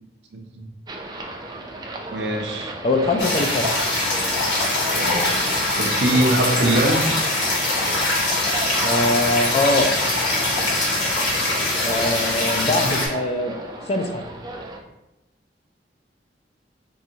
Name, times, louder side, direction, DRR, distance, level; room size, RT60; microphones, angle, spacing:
voice 1, 0.3-0.7 2.1-2.7 4.9-7.1, right 1 dB, 70° right, 3 dB, 0.6 m, -23 dB
sound 1, 0.9-14.8, right 1 dB, 25° right, 0.4 m, -35 dB
voice 2, 2.8-3.7 8.8-9.9 11.8-13.5 13.9-14.2, left 2 dB, 35° left, 4 dB, 0.4 m, -22 dB
sound 2, 3.2-13.1, left 2 dB, 80° left, 1.3 m, -22 dB
4.7 x 2.6 x 2.7 m, 0.95 s
head